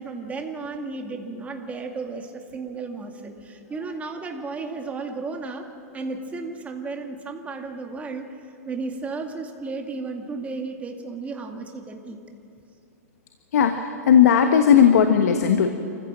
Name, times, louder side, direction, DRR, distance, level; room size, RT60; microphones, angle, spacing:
voice 1, 0.0-5.7 5.9-8.3 8.6-12.2, right 3 dB, 15° right, 3 dB, 2.2 m, -33 dB
voice 2, 13.5-15.7, left 8 dB, 80° left, 6 dB, 1.4 m, -16 dB
26.0 x 15.5 x 7.5 m, 2.7 s
hypercardioid pair, 130°, 8 cm